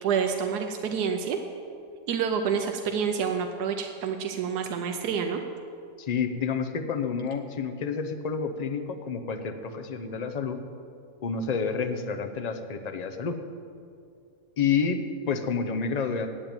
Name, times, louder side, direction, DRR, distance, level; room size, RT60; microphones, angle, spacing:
voice 1, 0.0-1.4 2.1-5.4, right 6 dB, 90° right, 5 dB, 1.3 m, -28 dB
voice 2, 6.0-10.6 11.2-13.4 14.6-16.3, left 5 dB, 40° left, 7 dB, 0.6 m, -29 dB
8.8 x 8.8 x 8.9 m, 2.4 s
omnidirectional pair, 1.6 m